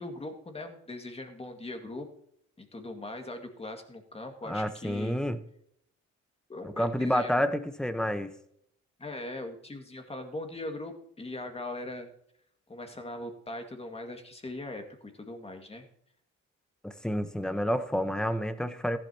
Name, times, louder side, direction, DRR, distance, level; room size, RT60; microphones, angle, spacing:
voice 1, 0.0-2.1 2.6-5.2 6.5-7.4 9.0-12.1 12.7-15.9, left 2 dB, 20° left, 5 dB, 2.1 m, -40 dB
voice 2, 4.4-5.4 6.6-8.3 16.8-19.0, equal, ahead, 10 dB, 1.0 m, -29 dB
15.0 x 11.5 x 2.9 m, 0.70 s
cardioid pair, 90°, 30 cm